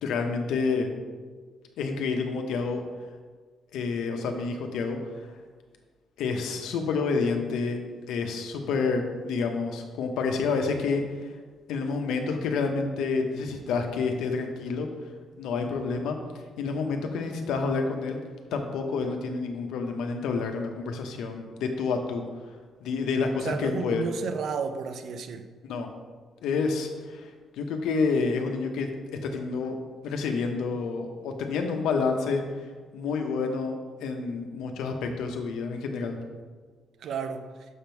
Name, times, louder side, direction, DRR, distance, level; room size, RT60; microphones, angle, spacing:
voice 1, 0.0-0.9 1.8-2.8 3.7-5.0 6.2-7.8 8.1-11.0 11.7-14.9 15.4-16.2 16.6-18.2 18.5-22.2 22.8-24.1 25.6-25.9 26.4-28.9 29.2-29.8 30.0-32.4 32.9-36.2, left 4 dB, 85° left, 0.9 m, -28 dB
voice 2, 23.4-25.5 37.0-37.4, right 6 dB, 70° right, 0.5 m, -32 dB
6.4 x 5.3 x 4.5 m
cardioid pair, 90°, 0 cm